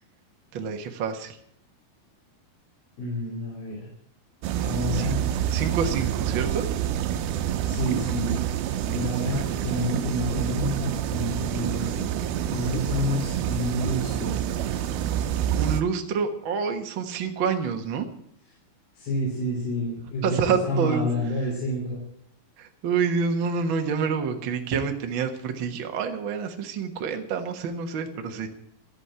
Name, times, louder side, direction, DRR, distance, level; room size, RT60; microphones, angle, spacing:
voice 1, 0.5-1.4 4.9-5.1 5.5-6.6 9.3-9.4 15.6-18.1 20.2-21.1 22.6-28.5, right 5 dB, 65° right, 4 dB, 1.2 m, -27 dB
voice 2, 3.0-3.9 4.6-5.2 7.6-8.4 8.9-12.1 12.5-14.4 19.0-22.0, left 1 dB, 70° left, -3 dB, 5.1 m, -29 dB
sound 1, 4.4-15.8, right 10 dB, 80° right, 2.6 m, -27 dB
13.0 x 8.5 x 8.8 m, 0.69 s
omnidirectional pair, 4.4 m